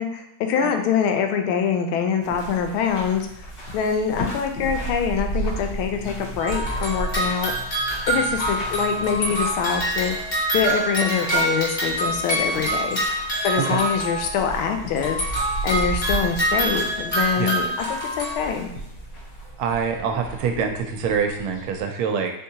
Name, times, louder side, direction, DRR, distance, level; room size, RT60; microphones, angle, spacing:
voice 1, 0.0-3.3 3.7-7.5 8.1-10.2 10.5-13.0 13.4-15.2 15.6-18.7, left 7 dB, 85° left, 5 dB, 1.4 m, -24 dB
sound 1, 2.2-21.8, right 2 dB, 50° left, 1.7 m, -34 dB
sound 2, 6.4-14.6 15.0-18.4, right 1 dB, 30° left, 1.1 m, -25 dB
voice 2, 19.6-22.3, right 6 dB, 85° right, 4 dB, 1.5 m, -25 dB
4.1 x 3.6 x 2.8 m, 0.74 s
omnidirectional pair, 2.3 m